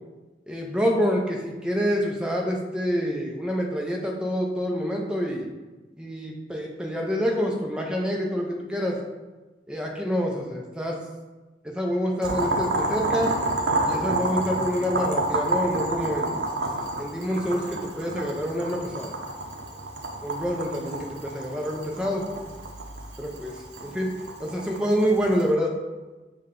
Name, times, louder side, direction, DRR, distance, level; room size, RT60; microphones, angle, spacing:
voice 1, 0.5-5.5 6.0-9.0 9.7-11.0 11.6-13.3 13.8-16.4 17.0-19.1 20.2-22.3 23.2-24.1 24.4-25.7, equal, 5° right, -1 dB, 0.4 m, -27 dB
Boiling, 12.2-25.5, right 2 dB, 70° right, 0.6 m, -29 dB
5.3 x 2.2 x 3.7 m, 1.2 s
head